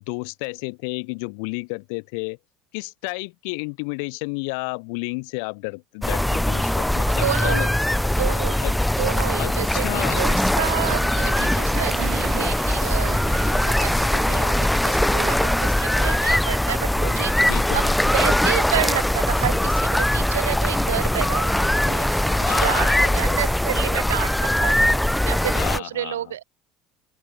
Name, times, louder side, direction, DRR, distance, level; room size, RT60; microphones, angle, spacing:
voice 1, 0.0-2.4 2.7-7.7 8.6-8.7 9.4-10.3 17.4-18.0 22.3-23.4 25.6-26.2, left 35 dB, 60° left, 0.5 m, -31 dB
sound 1, 6.0-25.8, left 1 dB, 5° left, 0.5 m, -21 dB
voice 2, 7.1-7.7 8.2-8.7 9.0-17.8 18.1-26.4, right 12 dB, 70° right, 0.5 m, -30 dB
Toilet flush, 10.9-15.9, right 18 dB, 50° right, 2.9 m, -37 dB
open air
figure-of-eight pair, 65°, 0 cm